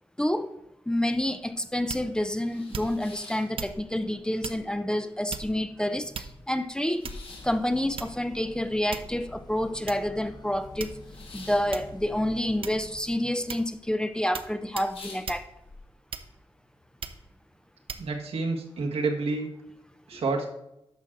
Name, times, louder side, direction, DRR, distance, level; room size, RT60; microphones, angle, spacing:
voice 1, 0.2-0.5 0.9-7.1 7.4-10.9 11.3-15.5 20.1-20.2, left 1 dB, 10° left, 0.5 m, -28 dB
sound 1, 1.4-1.5 2.0-4.2 4.5-5.2 5.6-5.7 5.9-10.0 10.3-13.1 13.3-13.9 14.3-14.4 14.7-15.8, left 3 dB, 65° left, 2.0 m, -48 dB
sound 2, 1.9-2.2 2.7-3.1 3.6-3.8 4.4-4.7 5.3-5.7 6.1-6.6 7.0-7.4 8.0-8.3 8.9-9.2 9.9-10.0 10.8-11.2 11.7-12.0 12.6-13.0 13.5-13.7 14.3-14.5 14.8-14.9 15.3-15.5 16.1-16.5 17.0-17.3 17.9-18.1, right 6 dB, 65° right, 0.6 m, -38 dB
sound 3, 7.3-13.0, left 2 dB, 45° left, 1.2 m, -47 dB
voice 2, 18.0-19.5 20.1-20.5, right 3 dB, 90° right, 1.6 m, -29 dB
11.0 x 6.2 x 3.8 m
wide cardioid pair, 90°, 10 cm